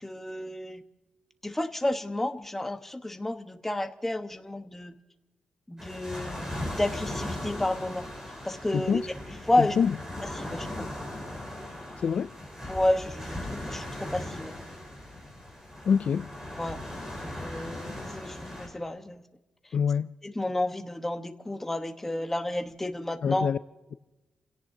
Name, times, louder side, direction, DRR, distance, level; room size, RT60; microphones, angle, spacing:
voice 1, 0.0-0.8 1.4-4.9 5.7-8.1 8.4-9.0 9.5-9.8 10.2-10.9 12.7-14.5 16.6-16.8 17.2-19.2 20.2-23.5, left 1 dB, 10° left, 1.1 m, -31 dB
sound 1, 5.8-18.7, left 1 dB, 20° right, 7.6 m, -38 dB
voice 2, 9.6-9.9 12.0-12.3 15.9-16.3 19.7-20.1 23.2-23.6, left 7 dB, 60° left, 0.4 m, -25 dB
29.5 x 17.5 x 2.7 m
wide cardioid pair, 120°, 2 cm